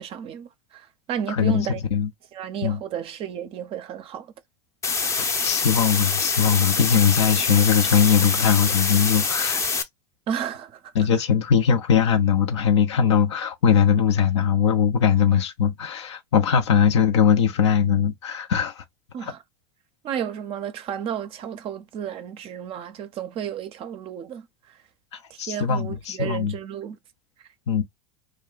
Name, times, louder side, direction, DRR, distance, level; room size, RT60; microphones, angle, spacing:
voice 1, 0.0-1.8 2.3-4.3 10.3-10.8 19.1-19.4 20.0-24.5 25.3-27.0, right 9 dB, 40° right, 0.5 m, -32 dB
voice 2, 1.3-2.1 2.6-2.8 5.2-9.7 10.9-18.8 19.2-19.3 25.1-26.5 27.7-27.8, left 7 dB, 75° left, 0.5 m, -21 dB
sound 1, 4.8-9.8, left 4 dB, 20° left, 0.5 m, -25 dB
2.3 x 2.1 x 3.6 m
hypercardioid pair, 90°, 15 cm